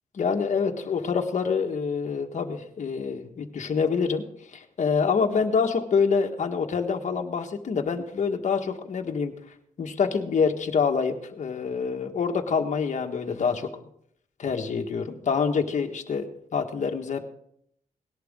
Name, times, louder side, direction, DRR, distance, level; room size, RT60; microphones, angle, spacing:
voice 1, 0.1-4.2 4.5-9.3 9.8-13.7 14.4-17.3, left 5 dB, 60° left, 4 dB, 1.6 m, -26 dB
19.0 x 11.5 x 3.8 m, 0.69 s
cardioid pair, 110°, 14 cm